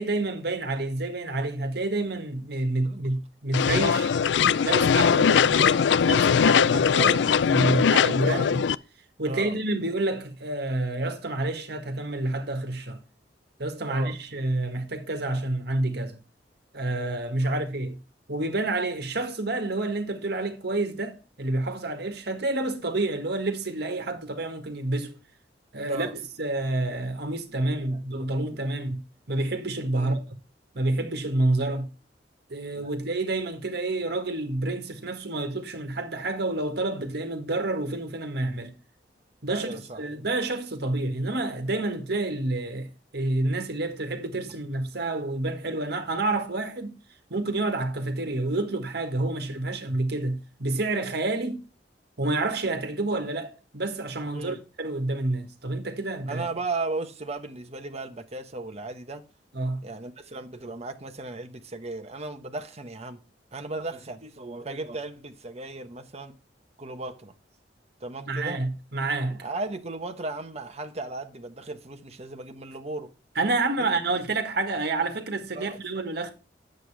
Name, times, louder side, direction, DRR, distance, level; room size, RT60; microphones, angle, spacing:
voice 1, 0.0-4.1 4.6-5.7 6.0-8.6 9.2-13.0 13.6-16.2 16.7-18.0 18.3-25.1 25.7-26.1 26.4-29.0 29.3-30.2 30.7-31.9 32.5-38.7 39.4-46.9 47.3-51.6 52.2-56.4 59.5-59.8 68.3-69.4 73.3-76.3, right 2 dB, 65° right, 1.7 m, -28 dB
sound 1, 3.5-8.8, left 7 dB, 75° left, 0.4 m, -21 dB
voice 2, 27.7-28.2 28.5-28.7 29.9-30.2 32.7-32.9 39.5-40.0 54.3-54.6 56.2-59.2 59.8-63.2 63.5-66.3 66.8-67.3 68.0-68.6 69.3-73.1 73.8-73.9 75.5-75.8, right 2 dB, 40° right, 1.2 m, -36 dB
9.4 x 7.8 x 3.4 m
head